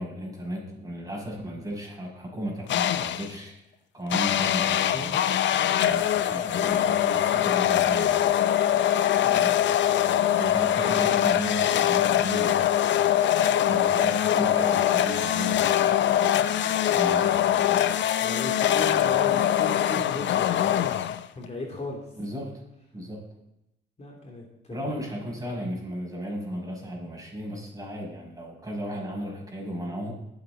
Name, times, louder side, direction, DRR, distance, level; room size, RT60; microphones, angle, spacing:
voice 1, 0.0-3.5 3.9-5.2 5.8-8.4 9.3-9.5 10.4-12.7 13.6-16.1 17.0-17.8 22.2-22.5 22.9-23.2 24.7-30.1, equal, 15° right, -2 dB, 5.8 m, -35 dB
sound 1, 2.7-3.4 4.1-21.5, left 11 dB, 65° left, 0.6 m, -23 dB
voice 2, 18.2-22.0 24.0-24.9, left 2 dB, 35° left, 0 dB, 2.8 m, -37 dB
21.5 x 8.1 x 3.9 m, 0.88 s
cardioid pair, 90°, 20 cm